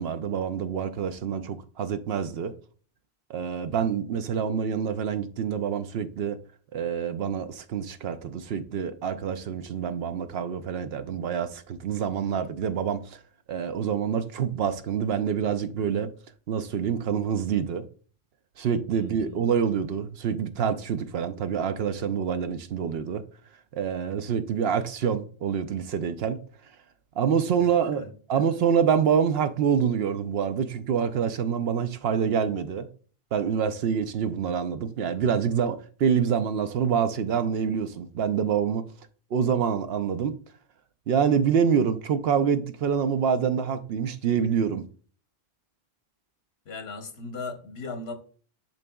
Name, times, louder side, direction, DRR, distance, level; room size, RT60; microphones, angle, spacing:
voice 1, 0.0-2.5 3.3-6.4 6.7-13.2 13.5-16.1 16.5-17.8 18.6-23.2 23.7-26.4 27.2-32.9 33.3-38.8 39.3-40.3 41.1-44.9, right 7 dB, 75° right, 0.8 m, -26 dB
voice 2, 19.0-19.4 27.9-28.4 46.7-48.1, left 3 dB, 80° left, 1.2 m, -38 dB
10.5 x 4.0 x 2.3 m
omnidirectional pair, 1.1 m